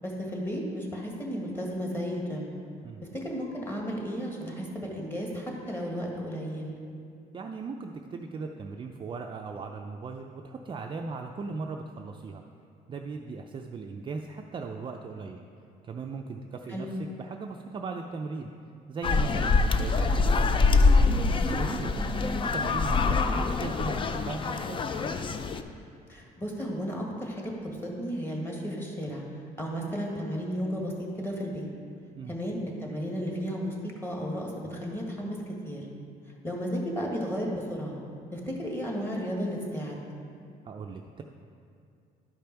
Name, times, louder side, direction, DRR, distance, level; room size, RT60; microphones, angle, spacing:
voice 1, 0.0-2.5 3.2-6.7 16.7-16.9 22.0-22.4 26.1-29.2 29.6-31.6 32.3-33.7 34.0-35.4 35.6-35.8 36.4-38.0 38.3-40.0, equal, 15° left, -2 dB, 1.7 m, -33 dB
voice 2, 7.3-12.4 12.9-15.4 15.8-18.5 18.9-20.9 21.3-24.8 32.1-32.3 40.7-41.2, right 4 dB, 30° right, 2 dB, 0.4 m, -38 dB
sound 1, 19.0-25.6, left 4 dB, 30° left, 0.4 m, -24 dB
11.5 x 5.1 x 4.5 m, 2.4 s
cardioid pair, 110°, 17 cm